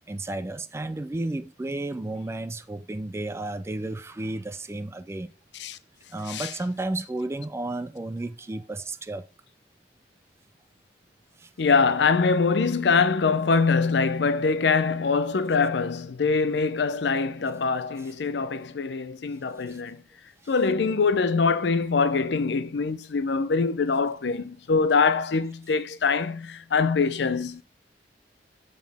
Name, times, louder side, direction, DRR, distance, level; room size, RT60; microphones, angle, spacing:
voice 1, 0.1-5.3 6.1-9.3 11.4-11.5 19.7-19.8 20.4-20.5, right 2 dB, 15° right, 0.3 m, -32 dB
voice 2, 11.6-20.0 20.5-27.6, left 4 dB, 70° left, 0.5 m, -23 dB
7.2 x 3.8 x 3.4 m
head